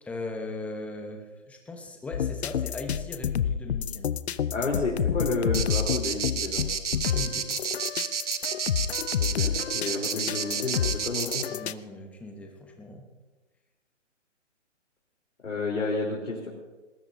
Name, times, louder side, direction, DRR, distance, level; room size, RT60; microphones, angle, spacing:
voice 1, 0.0-4.1 6.9-7.5 11.5-13.0, left 2 dB, 5° left, 3 dB, 1.1 m, -39 dB
sound 1, 2.1-11.7, left 8 dB, 60° left, 0.7 m, -29 dB
voice 2, 4.5-6.6 9.2-11.4 15.4-16.5, left 3 dB, 80° left, -3 dB, 3.9 m, -30 dB
sound 2, 5.5-11.4, right 7 dB, 70° right, 1.5 m, -30 dB
21.0 x 20.0 x 2.8 m, 1.2 s
hypercardioid pair, 150°, 37 cm